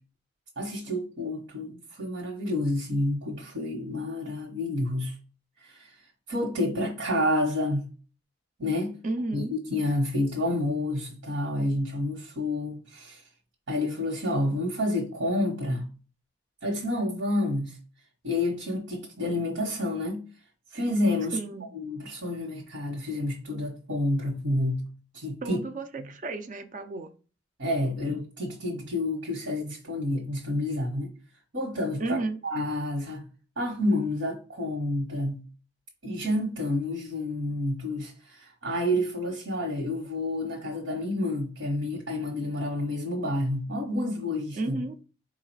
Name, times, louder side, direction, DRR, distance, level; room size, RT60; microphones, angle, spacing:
voice 1, 0.6-5.1 5.6-5.9 6.3-7.9 8.6-9.0 9.3-13.2 13.7-15.9 16.6-17.8 18.2-20.2 20.7-21.4 21.7-24.9 25.1-25.6 26.0-26.1 27.6-31.1 31.5-32.2 32.4-33.2 33.6-35.4 36.0-44.8, left 1 dB, 80° right, 1.3 m, -29 dB
voice 2, 9.0-9.5 21.3-21.7 25.4-27.1 32.0-32.4 44.6-45.0, right 2 dB, 40° right, 0.5 m, -32 dB
4.7 x 2.4 x 4.6 m
head